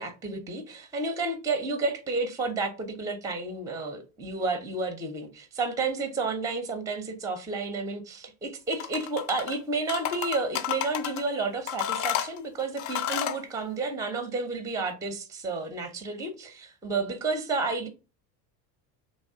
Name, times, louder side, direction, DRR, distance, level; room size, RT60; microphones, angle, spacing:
voice 1, 0.0-17.9, right 3 dB, 5° right, 0.5 m, -31 dB
sound 1, 8.7-9.6 9.9-11.2 11.7-13.4, left 10 dB, 70° left, 0.6 m, -31 dB
3.0 x 2.3 x 2.6 m
hypercardioid pair, 75°, 50 cm